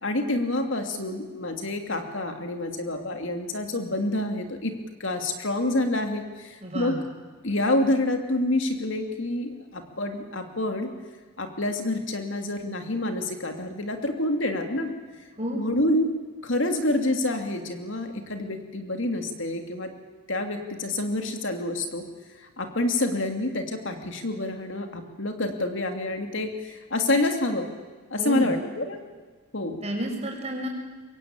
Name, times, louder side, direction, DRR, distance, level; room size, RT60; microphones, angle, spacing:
voice 1, 0.0-4.7 5.0-7.0 7.4-10.9 11.4-14.9 15.5-16.1 16.4-19.9 20.3-22.0 22.3-27.7 28.1-29.0 29.5-29.8, left 1 dB, 60° left, 5 dB, 2.7 m, -27 dB
voice 2, 6.6-7.0 15.4-15.7 28.2-28.6 29.8-30.7, right 1 dB, 30° right, 0 dB, 6.1 m, -30 dB
25.0 x 22.5 x 9.0 m, 1.4 s
head